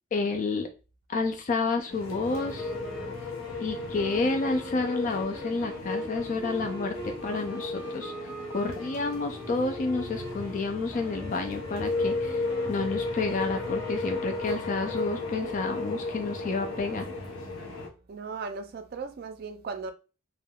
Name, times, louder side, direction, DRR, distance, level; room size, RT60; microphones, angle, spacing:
voice 1, 0.1-0.7 1.1-2.7 3.6-12.4 12.7-17.1, left 3 dB, 40° left, 0.3 m, -30 dB
sound 1, 1.9-17.9, left 2 dB, 85° left, 0.7 m, -34 dB
Wind instrument woodwind instrument, 2.3-14.7, right 2 dB, 10° right, 0.6 m, -44 dB
voice 2, 14.0-14.4 18.1-19.9, right 4 dB, 45° right, 0.3 m, -37 dB
3.3 x 2.2 x 2.2 m
head